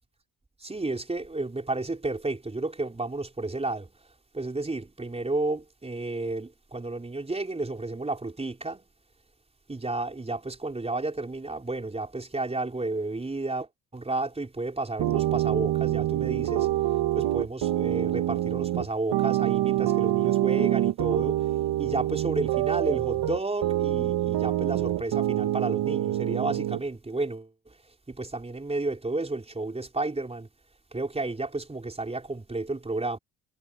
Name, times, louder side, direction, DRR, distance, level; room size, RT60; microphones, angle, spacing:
voice 1, 0.6-3.9 4.3-8.8 9.7-16.7 17.1-21.4 21.8-27.7 28.1-30.5 30.9-33.2, right 2 dB, 15° right, 5.0 m, -32 dB
sound 1, 15.0-26.8, right 13 dB, 70° right, 1.6 m, -26 dB
cardioid pair, 110°, 39 cm